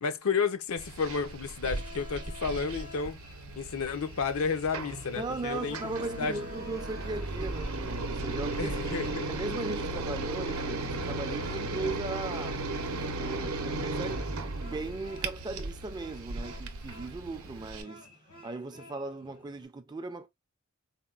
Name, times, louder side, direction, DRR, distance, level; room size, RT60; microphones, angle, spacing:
voice 1, 0.0-3.2 3.6-5.8 6.2-6.4 8.6-9.3, left 5 dB, 70° left, 0.5 m, -31 dB
sound 1, 0.8-17.8, right 2 dB, 80° right, 0.6 m, -36 dB
sound 2, 1.6-19.6, left 3 dB, 90° left, 1.2 m, -52 dB
voice 2, 5.1-8.8 9.3-12.6 13.1-18.1 18.4-20.3, right 3 dB, 20° right, 0.4 m, -38 dB
4.1 x 2.1 x 2.3 m
head